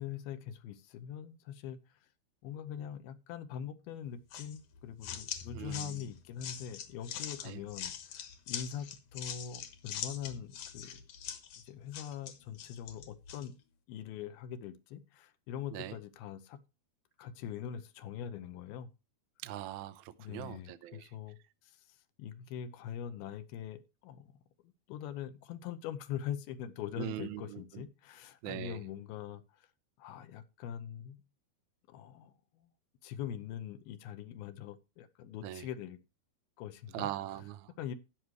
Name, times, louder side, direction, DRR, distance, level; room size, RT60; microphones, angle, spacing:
voice 1, 0.0-1.8 2.4-11.0 11.6-13.5 13.9-16.6 17.2-18.9 20.2-21.4 21.6-24.3 24.9-29.7 30.0-31.2 31.9-32.7 33.0-36.0 36.6-37.1 37.8-38.0, left 9 dB, 80° left, 2.6 m, -43 dB
sound 1, 4.3-13.5, left 9 dB, 65° left, 2.4 m, -43 dB
voice 2, 5.5-6.1 7.4-7.6 15.7-16.0 19.4-21.1 27.0-27.8 28.4-28.8 35.4-35.7 36.9-37.7, right 13 dB, 90° right, 1.7 m, -41 dB
13.5 x 9.3 x 3.2 m
omnidirectional pair, 4.4 m